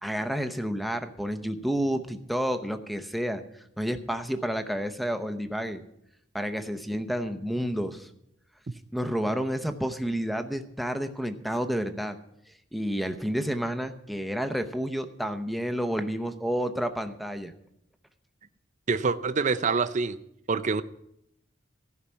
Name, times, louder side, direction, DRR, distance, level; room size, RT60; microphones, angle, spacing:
voice 1, 0.0-3.4 3.8-5.8 6.3-8.1 8.9-12.2 12.7-17.5, equal, ahead, 8 dB, 0.8 m, -30 dB
voice 2, 18.9-20.2 20.5-20.8, right 4 dB, 40° right, 13 dB, 0.5 m, -26 dB
14.5 x 5.8 x 8.5 m, 0.77 s
head